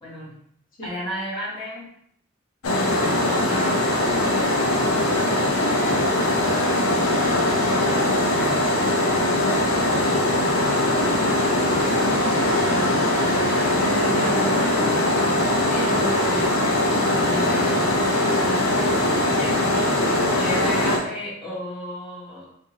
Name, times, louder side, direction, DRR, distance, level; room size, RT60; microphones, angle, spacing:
voice 1, 0.0-0.3 0.8-1.9 3.1-3.9 11.0-11.8 13.6-14.5 15.7-16.1 19.4-22.5, left 1 dB, 25° left, -7 dB, 1.4 m, -34 dB
sound 1, 2.6-21.0, left 1 dB, 80° left, 0.6 m, -21 dB
voice 2, 13.4-14.7 15.6-16.5 17.2-18.0, right 2 dB, 40° left, -3 dB, 0.9 m, -31 dB
3.4 x 2.6 x 2.9 m, 0.69 s
head